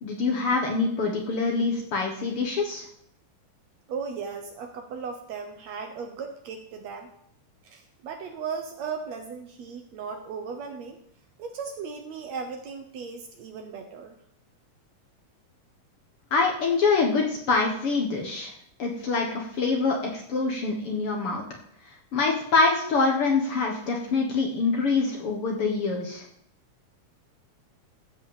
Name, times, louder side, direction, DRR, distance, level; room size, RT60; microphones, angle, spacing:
voice 1, 0.0-2.9 16.3-18.5 18.8-21.4 22.1-26.2, left 4 dB, 55° left, 1 dB, 1.9 m, -25 dB
voice 2, 3.9-7.1 7.6-11.0 11.4-14.1, right 5 dB, 65° right, 5 dB, 1.9 m, -36 dB
14.5 x 5.4 x 7.4 m, 0.70 s
omnidirectional pair, 3.8 m